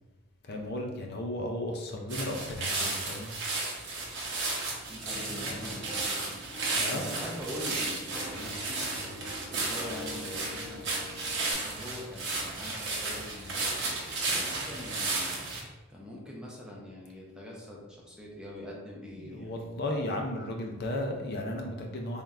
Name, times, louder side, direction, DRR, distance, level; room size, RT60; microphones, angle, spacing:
voice 1, 0.4-3.3 5.5-5.8 6.8-7.1 19.2-22.2, left 1 dB, 50° left, 2 dB, 0.5 m, -35 dB
sound 1, 2.1-15.6, right 3 dB, 60° right, 0.8 m, -33 dB
voice 2, 4.9-8.9 9.5-10.8 11.6-13.6 14.3-15.4 15.9-19.5, left 1 dB, 5° right, -4 dB, 0.7 m, -43 dB
Piano, 5.1-6.1 6.5-7.8 8.1-11.5, left 1 dB, 20° left, 1.0 m, -45 dB
3.6 x 2.3 x 4.1 m, 1.1 s
head